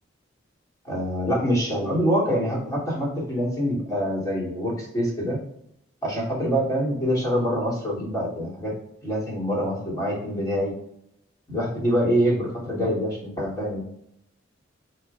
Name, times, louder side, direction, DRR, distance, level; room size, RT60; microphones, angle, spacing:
voice 1, 0.8-5.4 6.0-8.7 9.0-10.7 11.5-13.8, equal, 15° left, -6 dB, 2.8 m, -25 dB
8.9 x 6.3 x 2.4 m, 0.76 s
head